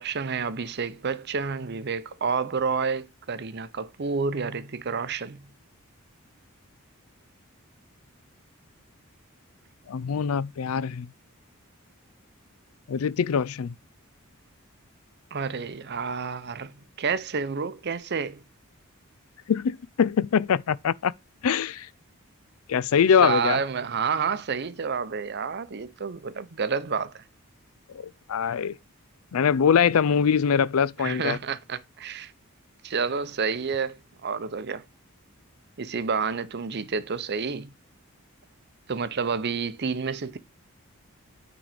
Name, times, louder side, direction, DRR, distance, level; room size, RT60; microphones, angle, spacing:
voice 1, 0.0-5.5 15.3-18.4 23.2-27.2 31.0-32.3 32.8-34.8 35.8-37.7 38.9-40.4, right 5 dB, 50° right, 0.6 m, -29 dB
voice 2, 9.9-11.1 12.9-13.7 19.5-21.1 21.4-21.9 22.7-23.6 27.9-28.7 29.3-31.4, left 7 dB, 75° left, 0.4 m, -23 dB
8.9 x 3.9 x 4.9 m
head